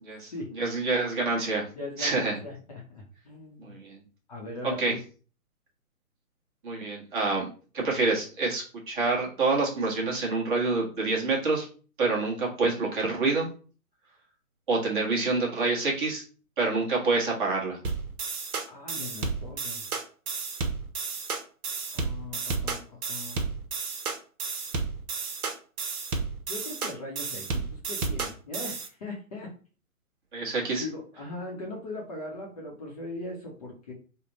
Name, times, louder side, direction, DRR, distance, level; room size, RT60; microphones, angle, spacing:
voice 1, 0.0-1.7 2.0-2.4 3.6-4.0 4.6-4.9 6.6-7.5 7.7-11.7 12.0-13.5 14.7-16.2 16.6-17.8 30.3-30.8, right 3 dB, 35° right, -2 dB, 1.2 m, -27 dB
voice 2, 1.7-3.8 4.3-5.0 18.7-19.8 21.9-23.4 26.5-29.5 30.6-33.9, left 2 dB, 25° left, -2 dB, 0.7 m, -39 dB
sound 1, 17.8-28.9, right 4 dB, 75° right, 0.9 m, -32 dB
3.5 x 2.2 x 3.8 m, 0.38 s
hypercardioid pair, 150°, 44 cm